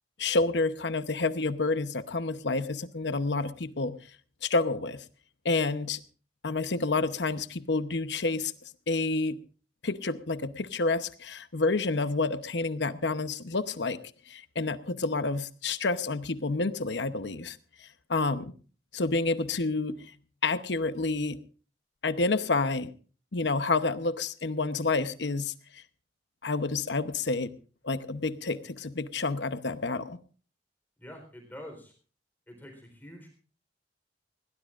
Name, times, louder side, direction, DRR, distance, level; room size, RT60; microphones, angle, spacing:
voice 1, 0.2-4.0 4.4-5.0 5.4-6.0 6.4-8.5 8.9-9.4 9.8-14.0 14.3-18.5 18.9-20.0 20.4-21.4 22.0-22.9 23.3-25.8 26.4-27.5 27.8-30.2, left 3 dB, 75° left, 12 dB, 0.9 m, -29 dB
voice 2, 31.0-31.9 32.5-33.3, left 1 dB, 10° left, 3 dB, 4.0 m, -46 dB
21.0 x 18.0 x 2.5 m, 0.38 s
head